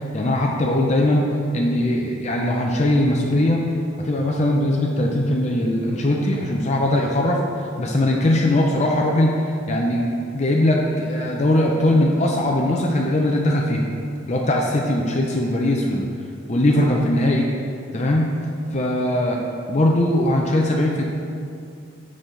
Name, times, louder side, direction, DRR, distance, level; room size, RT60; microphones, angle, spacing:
voice 1, 0.1-1.3 1.5-3.6 4.0-7.4 7.8-9.3 9.7-10.1 10.3-13.9 14.3-16.1 16.5-17.5 17.9-18.3 18.7-19.4 19.7-21.0, left 1 dB, 35° left, -1 dB, 0.6 m, -20 dB
7.7 x 6.3 x 3.9 m, 2.4 s
head